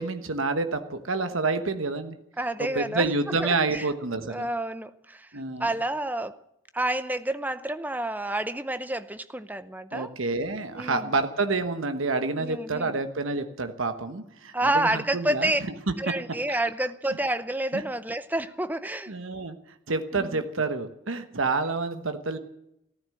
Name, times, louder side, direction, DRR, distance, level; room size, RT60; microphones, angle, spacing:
voice 1, 0.0-2.2 2.6-4.5 5.3-5.7 9.9-15.5 17.7-17.8 19.1-19.6 19.9-22.4, right 3 dB, 80° right, 9 dB, 1.2 m, -28 dB
voice 2, 2.4-3.1 3.4-3.9 4.3-5.3 5.6-6.4 6.7-10.1 10.8-11.1 12.4-13.0 14.5-15.6 16.0-19.1 20.1-20.4, right 1 dB, 10° right, 13 dB, 0.6 m, -29 dB
14.5 x 12.5 x 7.7 m, 0.81 s
head